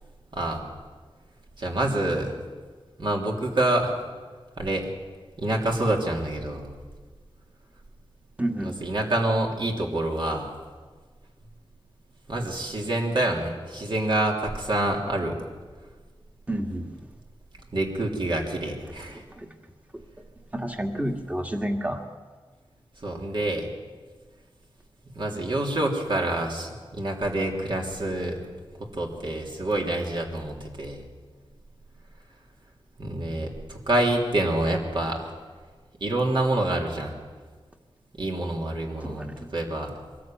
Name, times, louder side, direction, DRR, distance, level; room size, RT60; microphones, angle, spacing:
voice 1, 0.3-0.6 1.6-2.3 3.0-3.9 4.6-4.9 5.4-6.7 8.6-10.5 12.3-15.3 17.7-19.2 23.0-23.7 25.1-28.4 28.9-31.0 33.0-35.3 36.0-37.1 38.2-39.9, right 1 dB, 55° right, 0 dB, 3.3 m, -27 dB
voice 2, 8.4-8.8 16.5-16.9 18.8-19.5 20.5-22.1 39.0-39.5, right 1 dB, 15° right, 4 dB, 1.9 m, -30 dB
23.0 x 13.5 x 9.0 m, 1.5 s
wide cardioid pair, 110°, 10 cm